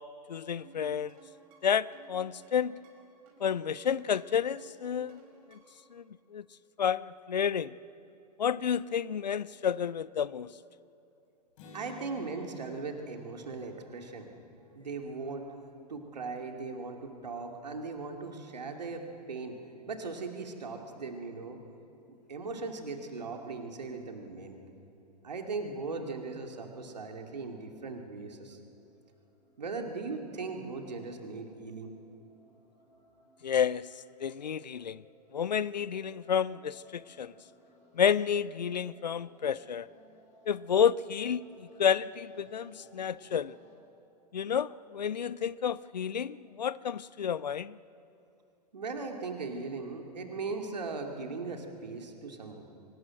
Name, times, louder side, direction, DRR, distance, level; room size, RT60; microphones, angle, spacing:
voice 1, 0.3-1.1 1.6-2.8 3.4-5.2 5.5-5.6 5.9-6.0 6.3-6.4 6.8-7.7 8.4-10.5 33.4-33.9 34.2-35.0 35.3-37.3 38.0-39.9 40.5-43.6 44.3-47.8, left 8 dB, 80° left, 20 dB, 0.6 m, -30 dB
sound 1, 0.6-5.9, right 3 dB, 40° right, 5.2 m, -57 dB
Acoustic guitar, 11.6-15.2, left 2 dB, 50° left, 5.0 m, -54 dB
voice 2, 11.7-14.3 14.7-15.6 15.9-21.6 22.3-24.6 25.2-28.6 29.6-31.9 48.7-52.6, right 4 dB, 75° right, 3 dB, 2.7 m, -39 dB
sound 2, 28.3-43.8, left 1 dB, 35° left, 4.9 m, -62 dB
24.0 x 19.0 x 7.7 m, 2.9 s
figure-of-eight pair, 100°, 21 cm